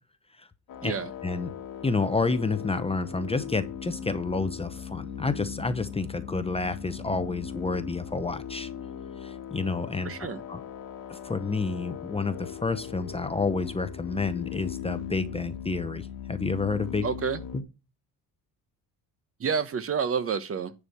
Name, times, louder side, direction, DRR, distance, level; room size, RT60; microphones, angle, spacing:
sound 1, 0.7-17.6, left 8 dB, 60° left, 1.4 m, -39 dB
voice 1, 1.8-8.7 9.2-10.1 10.5-10.6 11.1-17.1 17.5-17.6, left 3 dB, 15° left, 0.7 m, -29 dB
voice 2, 10.0-10.4 17.0-17.4 19.4-20.7, right 6 dB, 35° right, 0.9 m, -29 dB
10.5 x 4.7 x 5.5 m
cardioid pair, 150°, 37 cm